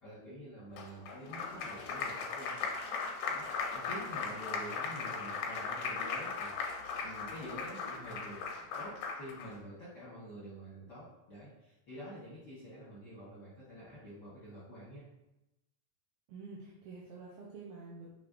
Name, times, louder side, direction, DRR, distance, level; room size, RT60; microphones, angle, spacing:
voice 1, 0.0-15.0, equal, 60° left, -9 dB, 1.1 m, -48 dB
Applause, 0.8-9.5, left 5 dB, 85° left, 2.1 m, -38 dB
voice 2, 16.3-18.1, right 3 dB, 90° right, -5 dB, 2.2 m, -48 dB
5.8 x 3.3 x 2.5 m, 0.94 s
omnidirectional pair, 3.4 m